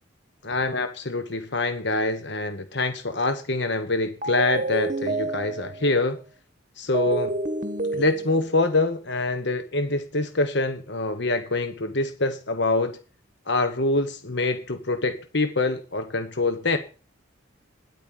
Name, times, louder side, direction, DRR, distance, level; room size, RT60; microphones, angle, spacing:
voice 1, 0.4-6.2 6.8-7.3 7.9-13.0 13.5-16.8, left 2 dB, 55° left, 1.3 m, -25 dB
sound 1, 4.2-5.9 6.9-8.6, right 2 dB, 40° right, 1.2 m, -29 dB
10.5 x 8.9 x 9.1 m
head